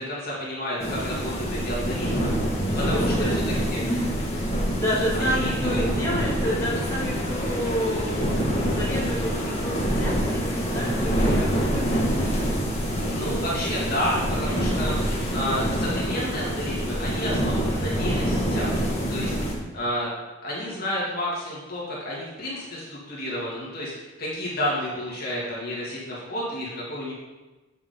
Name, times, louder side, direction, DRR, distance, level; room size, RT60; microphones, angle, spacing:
voice 1, 0.0-2.6 2.9-3.4 3.7-3.8 5.2-5.7 13.1-15.0 15.3-18.7 19.1-19.3 19.7-20.1 20.4-27.1, left 1 dB, 50° left, -6 dB, 2.6 m, -31 dB
sound 1, 0.8-19.5, equal, 30° left, 1.9 m, -26 dB
voice 2, 2.5-3.4 3.8-4.1 4.7-12.6 19.0-19.6, equal, 15° left, -9 dB, 2.8 m, -30 dB
8.8 x 7.3 x 3.9 m, 1.2 s
head